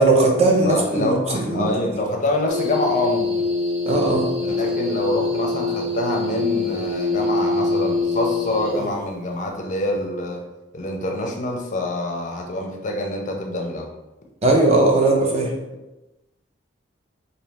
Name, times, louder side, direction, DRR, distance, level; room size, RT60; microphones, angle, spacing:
voice 1, 0.0-1.7 3.9-4.3 14.4-15.5, right 2 dB, 35° right, 0 dB, 0.7 m, -18 dB
voice 2, 0.6-3.5 4.4-10.4 10.7-13.9, left 1 dB, 40° left, 2 dB, 0.5 m, -26 dB
sound 1, 2.5-9.0, left 3 dB, 60° right, 1.0 m, -24 dB
4.0 x 2.7 x 3.3 m, 1.0 s
head